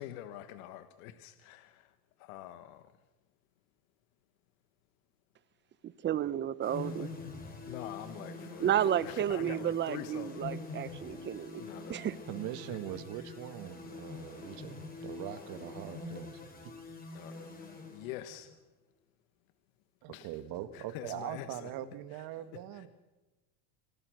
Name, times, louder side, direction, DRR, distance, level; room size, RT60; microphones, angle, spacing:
voice 1, 0.0-1.9 2.2-2.9 6.8-7.1 7.7-10.5 11.6-12.2 17.1-18.5 20.1-20.3 20.7-21.7 22.5-22.6, left 13 dB, 75° left, 10 dB, 1.5 m, -45 dB
voice 2, 6.0-7.1 8.6-11.6 11.9-12.2, right 10 dB, 25° right, 17 dB, 0.8 m, -31 dB
sound 1, 6.6-18.5, left 3 dB, 20° left, 4.9 m, -45 dB
voice 3, 12.3-16.3 20.0-22.9, right 12 dB, 55° right, 10 dB, 2.0 m, -42 dB
26.0 x 18.0 x 6.6 m, 1.1 s
supercardioid pair, 130°, 43 cm